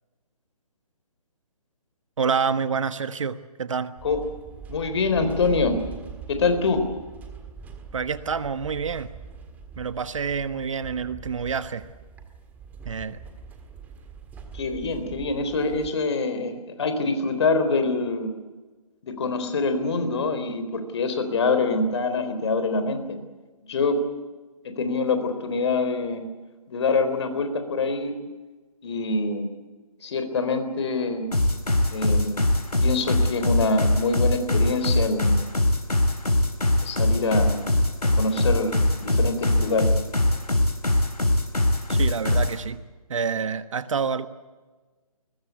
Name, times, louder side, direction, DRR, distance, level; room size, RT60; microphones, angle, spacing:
voice 1, 2.2-3.9 7.9-9.1 9.8-11.9 12.8-13.2 41.9-42.8 43.1-44.3, right 6 dB, 55° right, 12 dB, 1.3 m, -27 dB
sound 1, 4.0-15.9, right 6 dB, 10° right, 1.7 m, -42 dB
voice 2, 4.7-5.8 6.3-6.9 14.5-18.3 19.0-23.2 23.7-24.0 24.6-26.2 26.7-28.1 28.8-29.5 30.0-31.3 31.9-32.4 32.8-35.4 36.8-37.6 38.0-38.7 39.0-39.9, left 3 dB, 45° left, 8 dB, 3.9 m, -25 dB
sound 2, 31.3-42.6, left 1 dB, 85° left, 4.3 m, -22 dB
22.0 x 21.0 x 8.3 m, 1.3 s
figure-of-eight pair, 145°, 20 cm